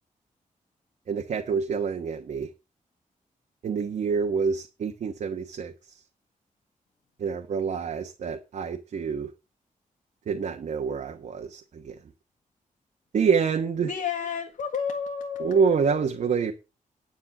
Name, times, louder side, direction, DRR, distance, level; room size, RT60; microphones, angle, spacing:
voice 1, 1.1-2.5 3.6-6.0 7.2-9.3 10.3-12.0 13.1-13.9 15.4-16.5, right 6 dB, 60° right, 1.3 m, -27 dB
voice 2, 13.8-16.1, left 7 dB, 70° left, 1.7 m, -31 dB
10.5 x 8.1 x 6.0 m
wide cardioid pair, 175°, 14 cm